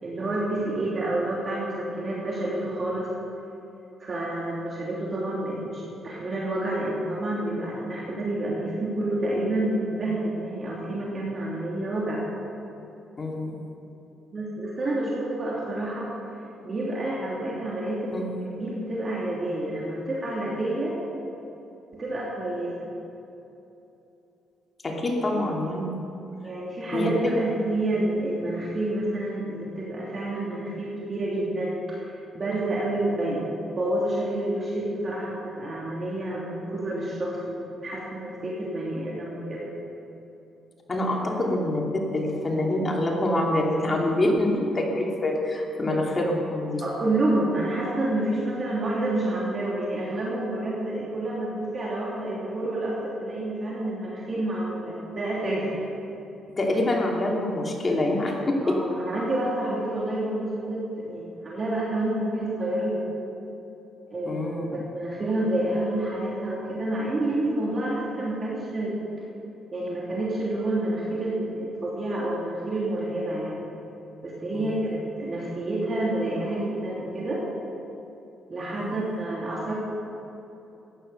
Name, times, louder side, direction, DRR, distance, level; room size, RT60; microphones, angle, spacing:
voice 1, 0.0-3.1 4.0-12.2 14.3-16.1 16.6-18.2 18.5-20.9 21.9-22.9 25.9-26.0 26.4-39.7 46.8-55.8 58.6-63.0 64.1-69.0 69.7-73.7 74.2-77.4 78.5-79.7, right 1 dB, 40° right, -5 dB, 2.9 m, -29 dB
voice 2, 13.2-13.6 18.1-18.3 24.8-25.9 26.9-27.3 40.9-41.8 42.1-46.8 56.6-58.8 64.2-64.7 74.5-74.8 78.8-78.9, left 1 dB, 30° left, -1 dB, 2.8 m, -25 dB
15.0 x 10.0 x 6.7 m, 2.9 s
cardioid pair, 90°, 0 cm